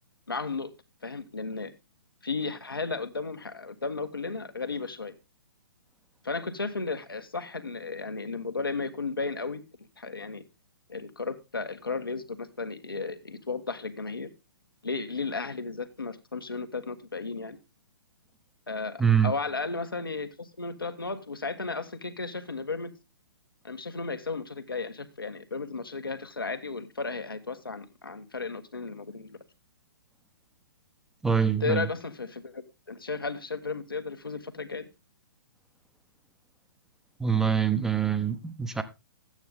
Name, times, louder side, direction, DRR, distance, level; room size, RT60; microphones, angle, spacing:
voice 1, 0.3-0.7 1.0-1.7 2.2-5.1 6.2-9.6 10.0-10.4 10.9-14.3 14.8-17.6 18.7-22.9 23.6-29.4 31.6-34.9, left 4 dB, 75° left, 1.5 m, -34 dB
voice 2, 19.0-19.3 31.2-31.9 37.2-38.8, right 7 dB, 5° right, 0.8 m, -24 dB
12.5 x 9.0 x 3.7 m
figure-of-eight pair, 120°, 12 cm